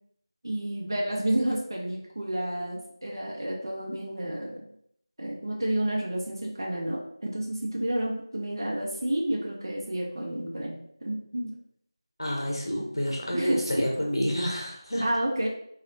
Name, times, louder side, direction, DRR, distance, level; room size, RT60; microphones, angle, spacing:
voice 1, 0.4-4.6 5.2-10.8 11.0-11.5 13.3-13.8 15.0-15.5, right 1 dB, 55° right, -2 dB, 0.5 m, -30 dB
voice 2, 12.2-15.0, equal, 65° left, -1 dB, 0.7 m, -28 dB
2.9 x 2.0 x 2.5 m, 0.71 s
figure-of-eight pair, 170°, 3 cm